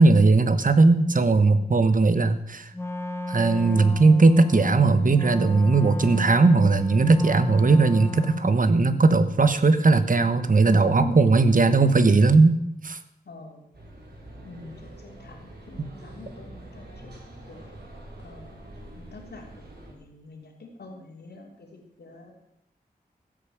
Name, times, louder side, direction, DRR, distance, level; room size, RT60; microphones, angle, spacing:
voice 1, 0.0-2.7 3.3-12.6 12.8-13.0, right 3 dB, 55° right, 11 dB, 1.3 m, -18 dB
voice 2, 1.5-1.9 11.0-11.2 13.2-13.7 14.4-17.1 17.4-17.7 18.2-18.6 18.9-22.3, left 2 dB, 85° left, 1 dB, 3.3 m, -43 dB
Wind instrument woodwind instrument, 2.7-8.7, left 2 dB, 15° left, 1.4 m, -33 dB
sound 1, 13.7-19.9, right 1 dB, 90° right, 4.5 m, -45 dB
15.5 x 8.8 x 7.3 m, 0.82 s
wide cardioid pair, 65°, 16 cm